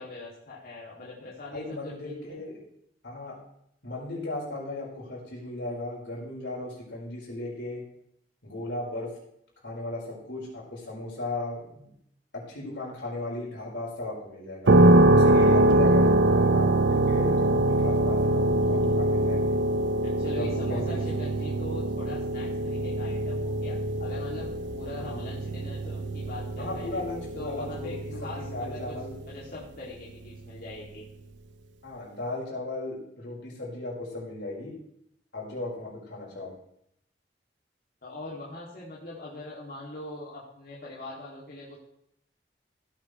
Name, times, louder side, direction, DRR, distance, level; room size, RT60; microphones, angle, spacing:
voice 1, 0.0-2.4 20.0-27.0 27.3-28.9 29.3-31.0 38.0-41.8, left 2 dB, 55° left, -6 dB, 2.7 m, -42 dB
voice 2, 1.5-2.6 3.0-3.3 3.8-7.8 8.4-9.1 9.6-11.9 12.3-14.7 15.1-19.6 20.3-21.1 25.0-25.3 26.6-29.2 31.8-34.7 35.3-36.5, left 2 dB, 90° left, -4 dB, 4.9 m, -36 dB
sound 1, 14.7-29.3, right 2 dB, 85° right, 0.6 m, -23 dB
16.0 x 9.6 x 3.3 m, 0.75 s
head